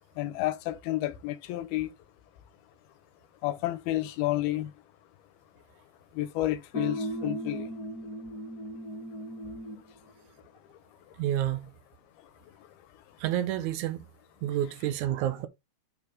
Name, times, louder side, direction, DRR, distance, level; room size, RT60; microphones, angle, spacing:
voice 1, 0.2-1.9 3.4-4.7 6.2-7.7, left 15 dB, 75° left, 2.8 m, -30 dB
sound 1, 6.7-9.9, equal, 30° left, 1.9 m, -36 dB
voice 2, 11.2-11.7 13.2-14.0 14.4-15.5, right 12 dB, 85° right, 1.7 m, -29 dB
9.4 x 4.6 x 3.7 m
omnidirectional pair, 4.6 m